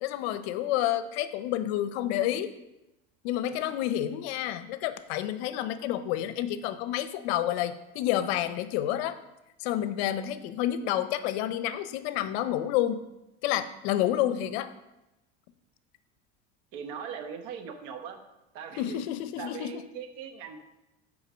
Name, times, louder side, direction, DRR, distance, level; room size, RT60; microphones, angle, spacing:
voice 1, 0.0-2.5 3.2-9.2 9.6-13.0 13.4-14.7 18.8-19.7, left 12 dB, 75° left, 12 dB, 0.7 m, -29 dB
voice 2, 16.7-18.2 18.5-19.0 19.4-20.6, right 7 dB, 70° right, 6 dB, 1.3 m, -40 dB
6.3 x 5.1 x 6.2 m, 0.96 s
supercardioid pair, 140°, 32 cm